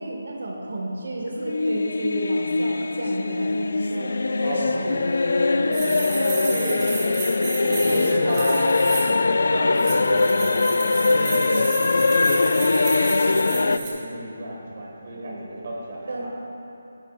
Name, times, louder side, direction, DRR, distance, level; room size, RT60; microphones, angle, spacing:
voice 1, 0.0-5.0 5.6-6.4 7.6-8.3 11.1-11.7 15.2-15.5 16.1-16.3, right 1 dB, 75° right, -1 dB, 1.4 m, -33 dB
sound 1, 1.4-13.8, left 3 dB, 65° left, 0.3 m, -22 dB
voice 2, 4.4-4.9 5.8-6.1 6.5-9.0 9.4-11.5 12.1-12.9 13.2-16.3, right 1 dB, 40° right, -3 dB, 1.7 m, -33 dB
sound 2, 5.7-9.2 9.7-13.9, right 4 dB, 15° right, 0.9 m, -33 dB
9.9 x 9.7 x 2.4 m, 2.9 s
hypercardioid pair, 175°, 0 cm